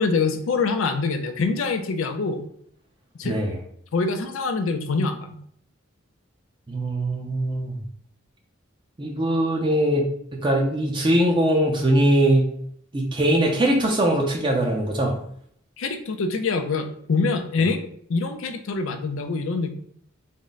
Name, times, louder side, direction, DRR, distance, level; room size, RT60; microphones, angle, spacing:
voice 1, 0.0-2.5 3.1-3.4 3.9-5.4 15.8-17.8 18.1-19.7, left 4 dB, 70° left, 7 dB, 0.4 m, -25 dB
voice 2, 3.2-3.6 6.7-7.8 9.0-10.0 10.4-12.4 12.9-15.1, right 1 dB, 25° right, 0 dB, 0.5 m, -21 dB
3.6 x 2.1 x 3.9 m, 0.64 s
head